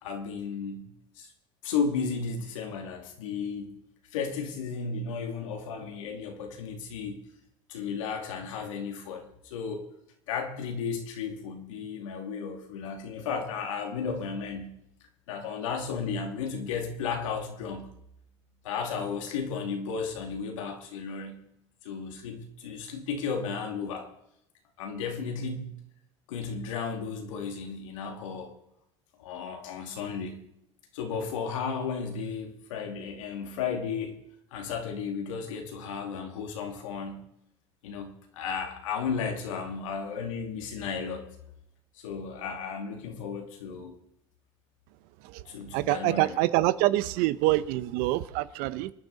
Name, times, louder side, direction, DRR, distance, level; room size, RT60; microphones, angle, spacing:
voice 1, 0.0-0.9 1.2-1.3 1.6-3.7 4.1-7.2 7.7-9.9 10.3-14.7 15.3-17.9 18.6-21.4 21.8-24.1 24.8-25.8 26.3-28.5 29.2-30.4 30.9-34.2 34.5-37.2 37.8-41.3 42.0-43.9 45.5-46.4, left 5 dB, 85° left, 2.5 m, -34 dB
voice 2, 45.7-48.9, right 17 dB, 70° right, 0.8 m, -26 dB
24.0 x 9.7 x 4.1 m
hypercardioid pair, 80°, 16 cm